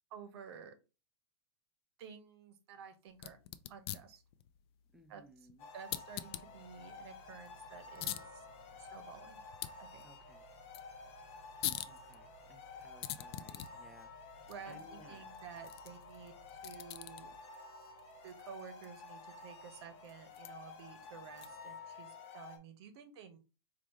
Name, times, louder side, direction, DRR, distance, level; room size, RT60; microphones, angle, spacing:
voice 1, 0.1-0.7 2.0-3.4 3.7-4.2 5.1-5.2 5.7-8.4 8.8-9.4 9.8-10.0 14.5-17.3 18.2-23.4, right 7 dB, 65° right, 0.9 m, -52 dB
sound 1, 3.1-21.8, left 13 dB, 60° left, 0.4 m, -48 dB
voice 2, 4.9-5.7 10.0-10.5 11.9-15.2, equal, ahead, 0.5 m, -61 dB
sound 2, 5.6-22.6, left 4 dB, 40° left, 0.9 m, -52 dB
sound 3, 6.1-17.4, right 12 dB, 30° right, 1.7 m, -64 dB
4.6 x 2.5 x 3.0 m
hypercardioid pair, 130°, 15 cm